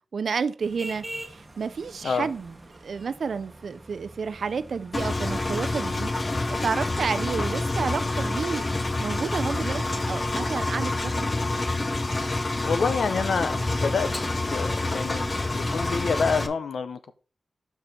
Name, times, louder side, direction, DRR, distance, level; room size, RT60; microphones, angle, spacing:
voice 1, 0.1-2.5 2.8-6.1 6.5-11.3, right 5 dB, 65° right, 0.5 m, -30 dB
sound 1, 0.6-11.0, right 1 dB, 20° right, 1.2 m, -46 dB
Engine, 4.9-16.5, left 2 dB, 30° left, 0.6 m, -27 dB
voice 2, 12.6-14.1 14.5-15.2 15.5-17.1, left 5 dB, 80° left, 0.7 m, -27 dB
6.9 x 5.9 x 4.2 m
wide cardioid pair, 150°, 0 cm